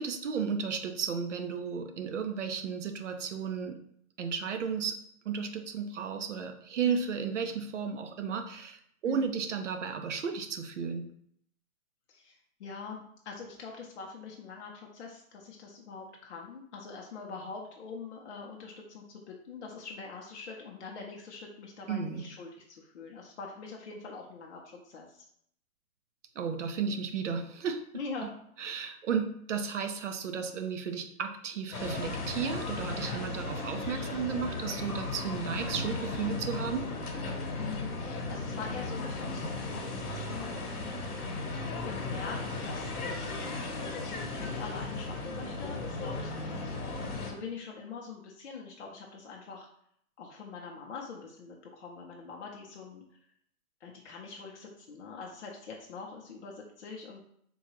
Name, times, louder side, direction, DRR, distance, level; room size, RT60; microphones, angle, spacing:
voice 1, 0.0-3.8 4.2-5.0 5.3-11.1 21.9-22.3 26.4-27.8 28.2-28.3 28.6-36.9, right 6 dB, 55° right, 6 dB, 0.5 m, -34 dB
voice 2, 9.0-9.3 12.1-25.2 27.9-28.4 37.6-41.4 41.8-43.4 44.0-46.6 47.0-49.7 50.2-53.0 53.8-57.2, left 5 dB, 50° left, -1 dB, 0.6 m, -44 dB
sound 1, 31.7-47.3, left 3 dB, 75° left, 1.0 m, -36 dB
3.7 x 2.2 x 3.0 m, 0.69 s
hypercardioid pair, 165°, 45 cm